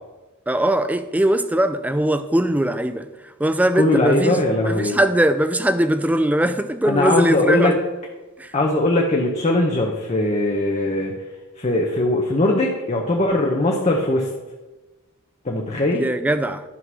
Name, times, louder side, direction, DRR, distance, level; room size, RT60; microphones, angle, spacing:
voice 1, 0.5-3.1 3.4-4.4 4.6-7.8 8.4-8.5 15.9-16.6, right 1 dB, 5° right, 0.4 m, -20 dB
voice 2, 3.8-5.0 6.8-7.7 8.5-11.1 11.6-14.3 15.4-16.0, left 2 dB, 30° left, 0.9 m, -20 dB
11.0 x 3.9 x 6.1 m
head